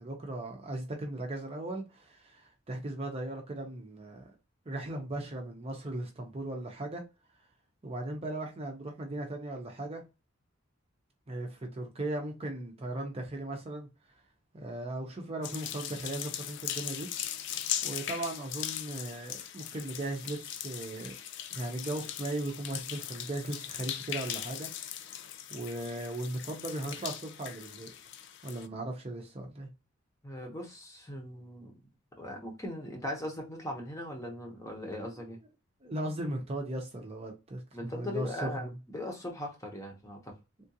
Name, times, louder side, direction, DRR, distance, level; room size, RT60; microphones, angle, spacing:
voice 1, 0.0-4.3 4.7-7.0 7.8-10.0 11.3-13.9 14.5-17.1 17.8-21.1 21.5-24.7 25.5-27.9 28.4-29.7 35.0-35.2 35.8-38.7, right 1 dB, 30° right, 0.7 m, -37 dB
sound 1, 15.4-28.7, left 10 dB, 60° left, 0.3 m, -39 dB
voice 2, 30.2-31.7 32.2-35.4 37.7-40.3, left 1 dB, 15° left, 0.8 m, -39 dB
3.6 x 2.4 x 2.7 m
head